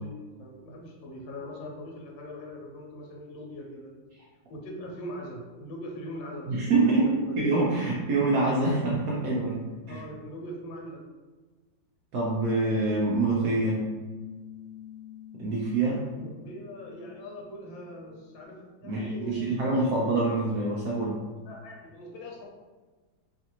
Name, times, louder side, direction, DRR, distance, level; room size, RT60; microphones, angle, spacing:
voice 1, 0.0-3.9 4.5-7.4 9.9-11.0 16.2-19.9 21.5-22.5, equal, 75° left, -1 dB, 1.4 m, -41 dB
voice 2, 6.5-10.0 12.1-13.8 15.4-16.2 18.8-21.2, right 2 dB, 80° right, -5 dB, 0.7 m, -26 dB
Piano, 13.3-18.4, left 11 dB, 35° left, 0.7 m, -47 dB
3.1 x 2.5 x 2.9 m, 1.3 s
omnidirectional pair, 2.1 m